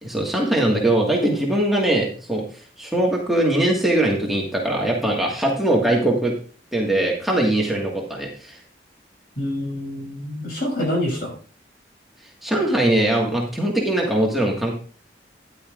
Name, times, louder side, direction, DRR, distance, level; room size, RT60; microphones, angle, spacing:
voice 1, 0.0-2.4 2.8-6.3 6.7-8.6 12.4-14.7, right 1 dB, ahead, -3 dB, 1.7 m, -21 dB
voice 2, 9.4-11.4, left 1 dB, 60° left, -1 dB, 6.3 m, -26 dB
13.0 x 10.5 x 2.5 m, 0.39 s
head